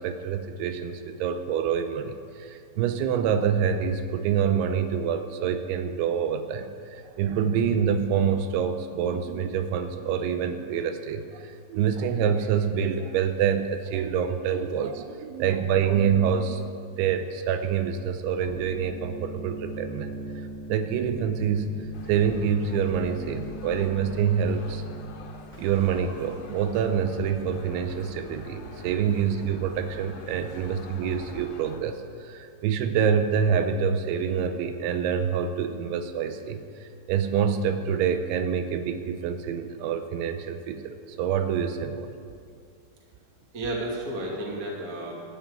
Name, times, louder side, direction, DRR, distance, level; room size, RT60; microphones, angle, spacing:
voice 1, 0.0-6.7 7.2-16.6 17.0-20.2 20.7-21.7 22.1-24.8 25.6-32.0 32.3-36.6 37.1-42.1, right 7 dB, 85° right, 8 dB, 3.1 m, -26 dB
sound 1, 18.4-31.2, right 2 dB, 5° left, 1.4 m, -41 dB
sound 2, 21.9-31.8, left 5 dB, 75° left, 3.1 m, -46 dB
voice 2, 43.5-45.2, right 1 dB, 35° right, -2 dB, 1.5 m, -33 dB
12.5 x 9.5 x 8.6 m, 2.3 s
omnidirectional pair, 5.3 m